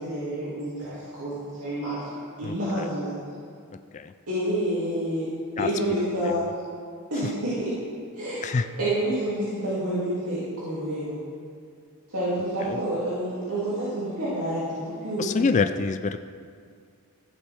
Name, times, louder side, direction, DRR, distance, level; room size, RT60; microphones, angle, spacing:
voice 1, 0.0-3.1 4.3-5.3 5.6-6.4 7.1-7.7 8.1-8.5 8.8-11.2 12.1-15.4, right 1 dB, 85° right, -11 dB, 2.5 m, -28 dB
voice 2, 2.4-2.9 3.9-4.1 5.6-5.7 8.4-8.7 12.7-12.8 15.2-16.2, left 4 dB, 35° left, 9 dB, 0.3 m, -26 dB
14.5 x 7.2 x 3.5 m, 2.1 s
head